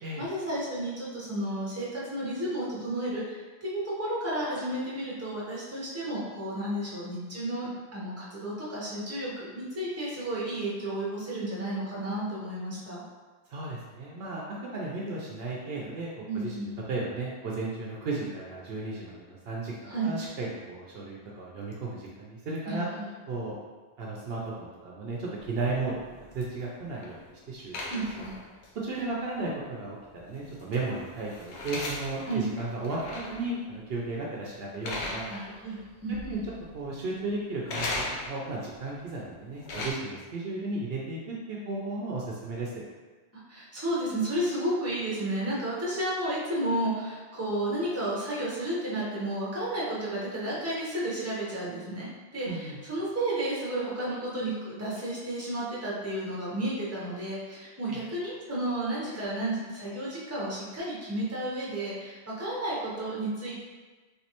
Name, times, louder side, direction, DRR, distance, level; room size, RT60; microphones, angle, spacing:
voice 1, 0.2-13.0 16.2-16.7 19.9-20.1 22.7-23.1 27.9-28.4 32.3-32.4 35.3-36.4 43.5-63.6, right 1 dB, 15° right, -7 dB, 0.8 m, -32 dB
voice 2, 13.5-22.9 23.3-23.6 24.0-26.0 26.3-28.2 28.7-30.0 30.2-35.3 35.7-35.8 36.1-36.4 36.7-42.7 52.5-52.8 57.9-58.0, right 3 dB, 65° right, -4 dB, 0.8 m, -35 dB
sound 1, 25.4-27.2 27.7-28.7 28.9-29.0 30.3-33.5 33.9-34.2 34.8-35.8 36.1-36.7 37.7-38.6 39.3-39.9, left 2 dB, 85° left, 0.9 m, -38 dB
3.3 x 3.1 x 2.9 m, 1.3 s
omnidirectional pair, 1.1 m